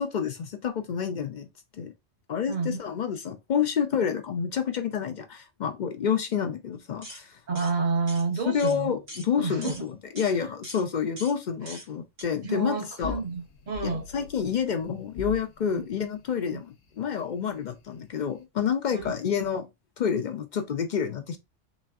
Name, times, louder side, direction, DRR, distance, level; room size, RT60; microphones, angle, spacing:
voice 1, 0.0-1.5 1.7-1.9 2.3-7.4 8.3-13.2 13.8-19.7 20.0-21.4, left 7 dB, 60° left, 0.4 m, -29 dB
voice 2, 2.5-2.8 7.5-8.9 9.4-9.9 12.4-14.0 16.5-16.6 18.9-19.1, right 4 dB, 45° right, 0.8 m, -29 dB
sound 1, 7.0-7.2 7.6-7.7 8.1-8.2 8.6-8.8 9.1-9.3 9.6-9.8 10.2-10.3 10.6-10.8 11.2-11.4 11.7-11.9 12.2-12.3, equal, 80° right, 2.3 m, -42 dB
sound 2, 13.0-18.4, left 7 dB, 90° left, 1.1 m, -44 dB
4.1 x 3.3 x 2.3 m
omnidirectional pair, 1.3 m